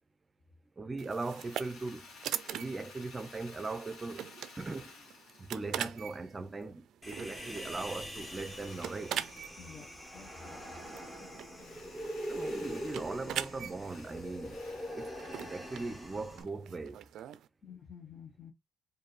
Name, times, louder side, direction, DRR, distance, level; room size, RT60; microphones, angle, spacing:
voice 1, 0.8-2.1 2.5-4.3 4.6-5.0 5.4-9.2 12.3-14.6 14.9-15.1 15.4-17.0, right 3 dB, 25° right, 0.5 m, -39 dB
sound 1, 1.0-17.5, right 10 dB, 80° right, 0.3 m, -43 dB
Drill, 1.1-6.6 7.2-10.5 11.5-16.3, left 4 dB, 75° left, 1.4 m, -56 dB
Human voice, 7.0-16.4, equal, 15° left, 1.3 m, -43 dB
voice 2, 9.6-9.9 10.1-10.7 17.6-18.5, left 7 dB, 45° left, 1.0 m, -50 dB
4.4 x 2.6 x 3.2 m
cardioid pair, 100°, 0 cm